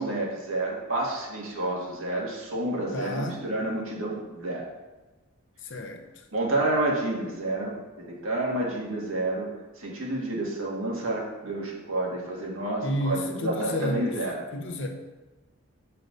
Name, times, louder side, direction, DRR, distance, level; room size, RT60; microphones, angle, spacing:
voice 1, 0.0-4.6 6.3-9.5 9.8-14.3, right 2 dB, 70° right, -2 dB, 2.1 m, -29 dB
voice 2, 2.9-3.4 5.6-6.0 12.8-14.2 14.5-14.9, left 1 dB, 60° left, 4 dB, 1.0 m, -30 dB
5.6 x 5.2 x 6.7 m, 1.2 s
head